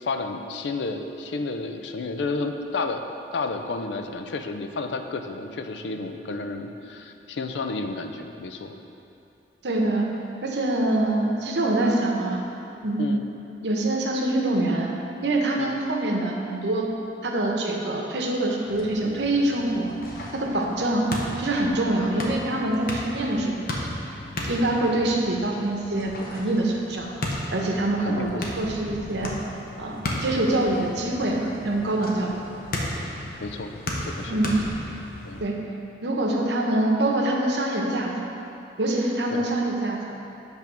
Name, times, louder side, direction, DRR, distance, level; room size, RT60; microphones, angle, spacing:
voice 1, 0.0-3.0 3.3-8.8 13.0-13.2 15.6-15.7 28.1-28.5 33.4-33.7 34.0-34.6 35.2-35.4 39.3-39.5, left 3 dB, 80° left, 6 dB, 0.5 m, -31 dB
voice 2, 9.6-10.1 10.4-12.4 12.8-13.2 13.6-14.9 15.2-16.9 17.2-19.9 20.3-21.1 21.4-23.5 24.5-27.1 27.5-29.3 29.7-32.4 34.3-34.5 35.4-35.6 36.0-38.1 38.8-40.0, right 1 dB, 70° right, 0 dB, 0.9 m, -25 dB
sound 1, 18.7-35.4, left 1 dB, 55° left, 0.9 m, -35 dB
8.1 x 3.5 x 6.0 m, 2.8 s
head